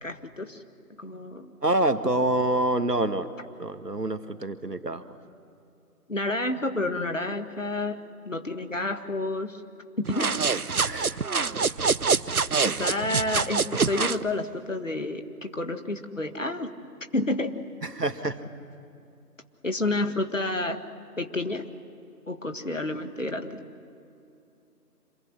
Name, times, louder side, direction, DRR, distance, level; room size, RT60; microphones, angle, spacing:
voice 1, 0.0-0.6 1.0-1.5 6.1-9.6 10.0-10.3 12.6-16.7 17.1-17.6 19.6-20.8 21.2-21.6 22.3-23.6, left 2 dB, 55° left, 7 dB, 1.8 m, -30 dB
voice 2, 1.6-3.3 3.6-5.2 10.8-11.2 11.5-12.2 13.1-13.2 17.8-18.4, right 1 dB, 85° right, 9 dB, 1.8 m, -27 dB
sound 1, 10.1-14.2, right 5 dB, 65° right, 0.8 m, -25 dB
26.5 x 22.0 x 10.0 m, 2.7 s
figure-of-eight pair, 170°, 47 cm